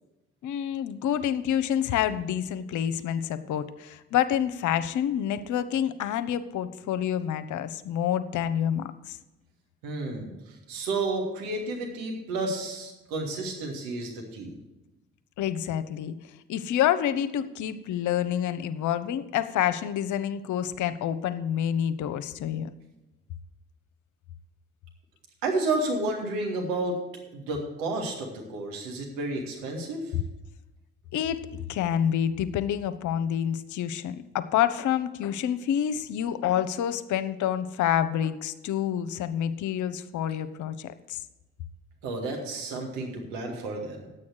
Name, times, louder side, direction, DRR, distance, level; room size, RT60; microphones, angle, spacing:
voice 1, 0.4-9.2 15.4-16.1 16.5-22.7 30.1-30.2 31.1-31.4 31.7-41.2, left 10 dB, 60° left, 13 dB, 0.8 m, -28 dB
voice 2, 9.8-14.6 25.4-27.0 27.3-30.1 42.0-44.1, right 2 dB, 75° right, 1 dB, 1.8 m, -31 dB
10.0 x 8.5 x 6.3 m, 1.0 s
figure-of-eight pair, 40°, 34 cm